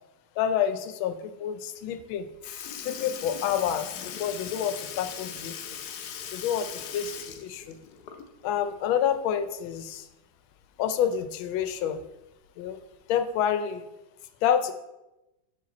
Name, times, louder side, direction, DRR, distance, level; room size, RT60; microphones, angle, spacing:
voice 1, 0.4-2.3 2.8-5.6 6.3-7.8 8.4-10.1 10.8-12.0 12.6-12.8 13.1-13.9 14.4-14.7, left 9 dB, 85° left, 10 dB, 1.4 m, -28 dB
Sink (filling or washing) / Liquid, 2.0-2.1 2.4-8.5 8.9-9.0 10.5-10.6 11.5-11.6 12.5-12.7 13.5-13.6, left 8 dB, 70° left, 1.0 m, -39 dB
7.2 x 4.9 x 4.1 m, 0.99 s
omnidirectional pair, 2.2 m